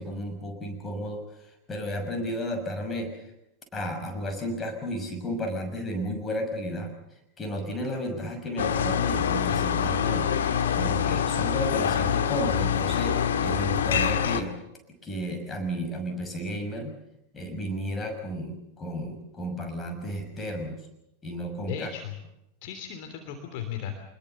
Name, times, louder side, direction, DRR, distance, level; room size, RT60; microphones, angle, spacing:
voice 1, 0.0-3.3 3.7-10.3 10.8-14.5 15.0-17.0 17.3-20.8 21.2-21.9, equal, 20° left, 5 dB, 6.1 m, -33 dB
sound 1, 8.6-14.4, left 8 dB, 65° left, 1.7 m, -25 dB
voice 2, 21.6-22.1 22.6-24.0, left 9 dB, 45° left, 5 dB, 3.1 m, -36 dB
25.5 x 21.5 x 6.9 m, 0.86 s
figure-of-eight pair, 90°, 0 cm